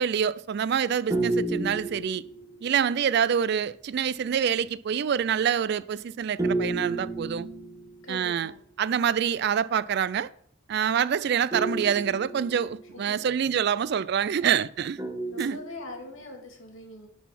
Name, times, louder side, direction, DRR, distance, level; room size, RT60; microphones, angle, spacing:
voice 1, 0.0-2.2 2.6-7.5 8.1-8.5 8.8-10.3 10.7-15.0 15.4-15.6, right 8 dB, 55° right, 0.3 m, -26 dB
sound 1, 1.1-2.8 6.4-8.2 11.5-13.0 15.0-16.2, right 2 dB, 15° right, 0.7 m, -31 dB
voice 2, 8.0-8.6 12.9-13.2 15.3-17.1, left 2 dB, 80° left, 2.2 m, -42 dB
10.5 x 4.1 x 5.8 m
head